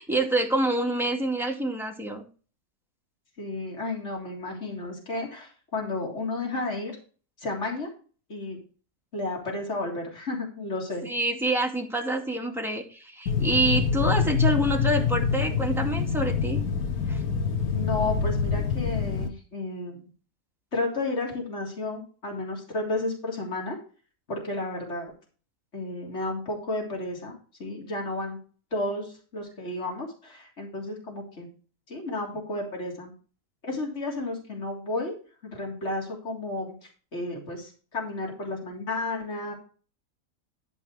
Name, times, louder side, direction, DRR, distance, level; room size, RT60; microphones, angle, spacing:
voice 1, 0.0-2.2 11.0-16.6 17.1-17.2, right 1 dB, ahead, 0 dB, 2.2 m, -27 dB
voice 2, 3.4-7.0 7.4-7.9 8.3-8.6 9.1-11.1 17.7-20.0 20.7-23.8 24.3-25.1 25.7-28.4 28.7-31.5 31.9-33.1 33.6-35.2 35.4-39.5, left 2 dB, 50° left, -2 dB, 3.6 m, -32 dB
sound 1, 13.3-19.3, left 5 dB, 75° left, 1.6 m, -26 dB
12.5 x 5.4 x 4.9 m, 0.37 s
omnidirectional pair, 1.6 m